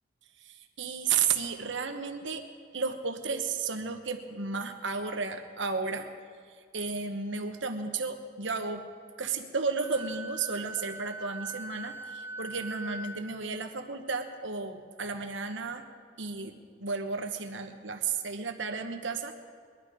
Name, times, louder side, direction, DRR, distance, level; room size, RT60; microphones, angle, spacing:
voice 1, 0.4-2.4 2.7-6.1 6.7-8.8 9.2-15.8 16.2-19.3, right 5 dB, 65° right, 6 dB, 1.2 m, -33 dB
Wind instrument woodwind instrument, 9.8-13.3, right 2 dB, 15° right, 1.2 m, -41 dB
20.5 x 11.5 x 5.0 m, 2.1 s
head